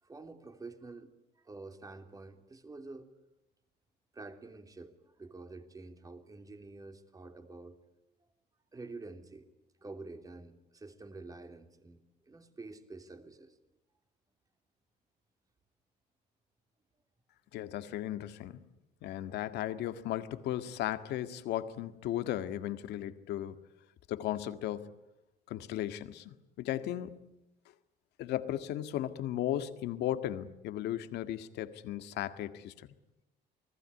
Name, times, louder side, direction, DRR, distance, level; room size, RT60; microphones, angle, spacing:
voice 1, 0.0-3.1 4.1-7.8 8.7-9.5 9.8-13.6, right 3 dB, 20° right, 6 dB, 3.2 m, -48 dB
voice 2, 17.5-18.7 19.0-23.6 24.1-24.9 25.5-27.4 28.2-32.9, left 12 dB, 80° left, 9 dB, 1.8 m, -36 dB
29.0 x 20.0 x 9.8 m, 0.93 s
cardioid pair, 110°, 17 cm